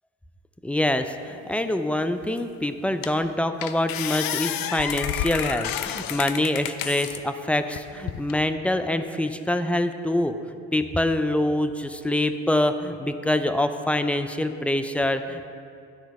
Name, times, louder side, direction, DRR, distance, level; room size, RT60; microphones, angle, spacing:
voice 1, 0.6-10.3 10.7-15.5, left 1 dB, 5° left, 8 dB, 0.3 m, -25 dB
sound 1, 2.4-2.5 3.0-3.3 3.6-7.2 7.7-8.4, left 10 dB, 60° left, 0.5 m, -30 dB
10.0 x 4.5 x 5.3 m, 2.4 s
hypercardioid pair, 60°, 39 cm